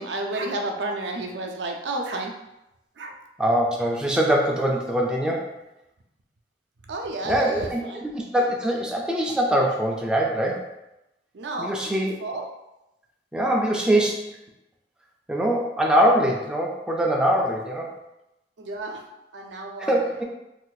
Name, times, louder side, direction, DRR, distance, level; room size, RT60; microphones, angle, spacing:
voice 1, 0.0-2.3 3.0-3.2 6.9-8.1 11.3-12.5 18.6-19.0 19.3-20.2, right 2 dB, 75° right, 2 dB, 0.5 m, -31 dB
voice 2, 3.4-5.5 7.2-10.7 11.6-12.1 13.3-14.4 15.3-17.9 19.8-20.2, right 1 dB, 5° right, -2 dB, 0.4 m, -23 dB
2.6 x 2.4 x 3.8 m, 0.92 s
head